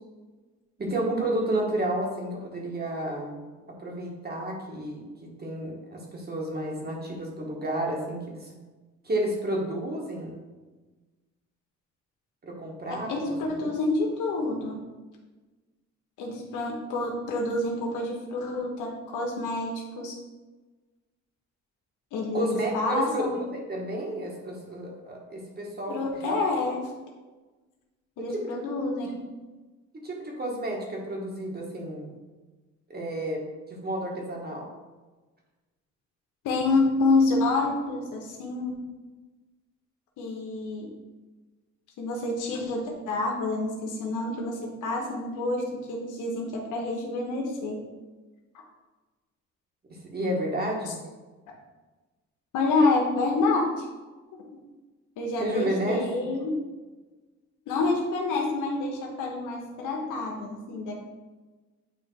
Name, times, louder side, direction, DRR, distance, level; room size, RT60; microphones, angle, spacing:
voice 1, 0.8-3.5 3.8-8.5 9.0-10.4 12.4-13.7 22.3-26.3 28.2-28.6 29.9-32.1 32.9-34.7 49.9-51.0 55.4-56.1, right 1 dB, 30° right, -1 dB, 1.8 m, -31 dB
voice 2, 12.9-14.8 16.2-20.2 22.1-23.4 25.9-26.9 28.2-29.2 36.4-38.8 40.2-40.9 42.0-47.8 52.5-53.8 54.4-54.5 55.2-56.6 57.7-60.9, left 3 dB, 90° left, -1 dB, 1.2 m, -28 dB
8.7 x 2.9 x 4.6 m, 1.2 s
cardioid pair, 90°, 30 cm